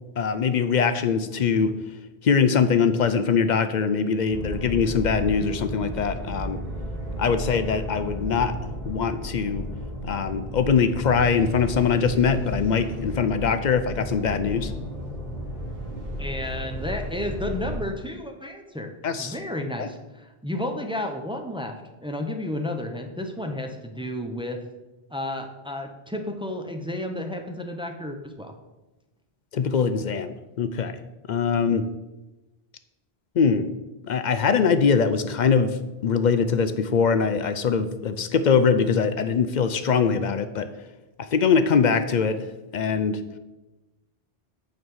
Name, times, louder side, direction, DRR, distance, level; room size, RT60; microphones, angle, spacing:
voice 1, 0.2-1.7 2.2-6.6 7.2-8.5 8.9-9.6 10.1-14.7 19.0-19.4 19.8-19.9 29.5-31.0 31.3-31.8 33.4-33.7 34.0-35.8 36.0-40.7 41.3-42.4 42.7-43.2, left 6 dB, 55° left, 11 dB, 0.6 m, -22 dB
sound 1, 4.3-17.8, equal, 60° right, 3.0 m, -33 dB
voice 2, 16.2-24.6 25.1-28.5, left 1 dB, 5° right, 4 dB, 0.6 m, -32 dB
6.6 x 5.3 x 6.2 m, 1.1 s
omnidirectional pair, 1.1 m